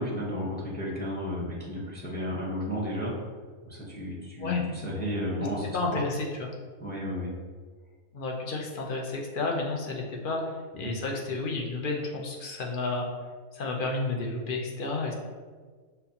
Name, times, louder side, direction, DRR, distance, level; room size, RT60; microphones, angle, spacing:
voice 1, 0.0-3.1 3.7-6.0 6.8-7.3 10.7-10.9, equal, 10° left, -5 dB, 0.6 m, -33 dB
voice 2, 5.7-6.5 8.1-13.1 13.5-15.1, left 3 dB, 55° left, 0 dB, 0.6 m, -31 dB
5.7 x 2.7 x 2.8 m, 1.5 s
omnidirectional pair, 1.4 m